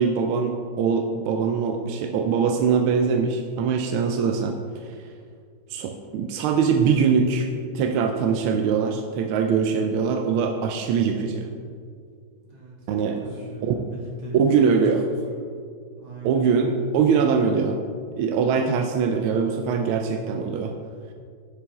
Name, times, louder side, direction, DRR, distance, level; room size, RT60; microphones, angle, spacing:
voice 1, 0.0-4.9 5.7-7.5 7.7-11.5 12.9-13.2 13.6-13.8 14.3-15.0 16.2-17.8 18.1-20.8, right 6 dB, 85° right, 4 dB, 1.5 m, -22 dB
voice 2, 12.3-15.6 16.0-16.5, right 1 dB, 70° right, -5 dB, 3.1 m, -40 dB
10.5 x 7.6 x 3.6 m, 2.1 s
omnidirectional pair, 2.3 m